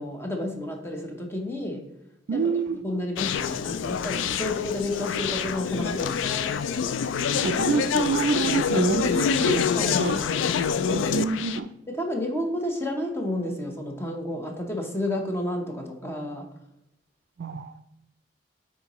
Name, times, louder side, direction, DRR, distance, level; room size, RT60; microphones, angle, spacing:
voice 1, 0.0-1.9 2.3-2.4 2.8-6.7 9.8-10.4 11.9-16.5, left 1 dB, 15° left, 0.8 m, -31 dB
voice 2, 2.3-2.8 7.3-10.2 10.8-11.7 17.4-17.8, right 5 dB, 65° right, 0.4 m, -27 dB
Conversation, 3.2-11.6, left 7 dB, 85° left, 0.3 m, -26 dB
9.3 x 3.7 x 3.0 m
head